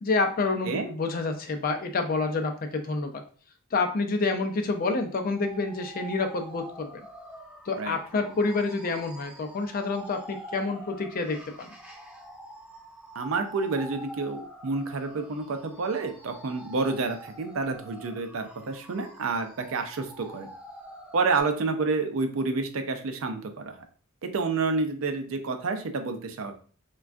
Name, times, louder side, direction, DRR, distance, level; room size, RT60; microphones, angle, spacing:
voice 1, 0.0-3.2 3.7-7.0 7.7-11.7, left 3 dB, 45° left, 6 dB, 0.4 m, -28 dB
sound 1, 5.3-21.4, right 1 dB, 5° right, 0.7 m, -46 dB
voice 2, 7.8-8.3 13.1-20.5 21.1-23.8 24.2-26.5, right 4 dB, 65° right, 7 dB, 0.4 m, -29 dB
3.4 x 2.3 x 2.4 m, 0.42 s
head